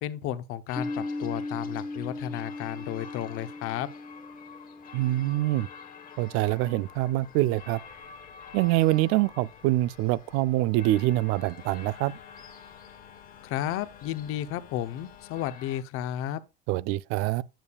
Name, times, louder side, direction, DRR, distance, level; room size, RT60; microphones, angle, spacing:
voice 1, 0.0-3.9 13.4-16.4, left 12 dB, 45° left, 0.8 m, -33 dB
sound 1, 0.7-15.8, left 6 dB, 30° left, 1.3 m, -49 dB
Piano, 0.8-6.1, left 2 dB, ahead, 0.8 m, -38 dB
voice 2, 4.9-5.7 6.2-7.8 8.5-12.1 16.7-17.4, right 16 dB, 50° right, 0.4 m, -25 dB
Telephone, 6.6-15.5, left 9 dB, 80° left, 1.8 m, -55 dB
8.9 x 6.8 x 2.3 m
supercardioid pair, 125°, 30 cm